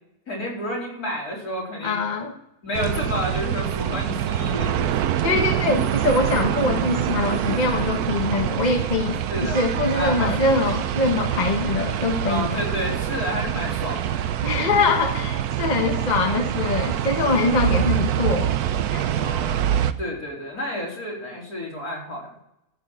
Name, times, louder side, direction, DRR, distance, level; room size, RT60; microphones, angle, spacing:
voice 1, 0.3-2.0 2.6-5.1 9.3-9.7 9.9-10.5 12.2-14.7 15.6-15.7 19.2-22.3, equal, 75° left, -4 dB, 4.4 m, -30 dB
voice 2, 1.8-2.3 5.2-12.5 14.4-18.5 18.9-19.1, left 3 dB, 30° left, 3 dB, 1.3 m, -23 dB
sound 1, 2.7-19.9, right 10 dB, 80° right, 1.2 m, -25 dB
13.5 x 7.2 x 5.9 m, 0.84 s
omnidirectional pair, 1.6 m